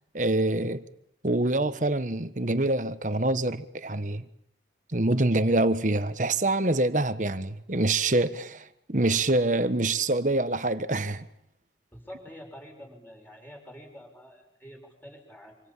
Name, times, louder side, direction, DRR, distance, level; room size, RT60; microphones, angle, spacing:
voice 1, 0.1-0.8 1.2-4.2 4.9-11.3, right 2 dB, 45° right, 1.3 m, -25 dB
voice 2, 11.9-15.7, equal, 10° left, 6.6 m, -47 dB
26.5 x 26.0 x 7.4 m
head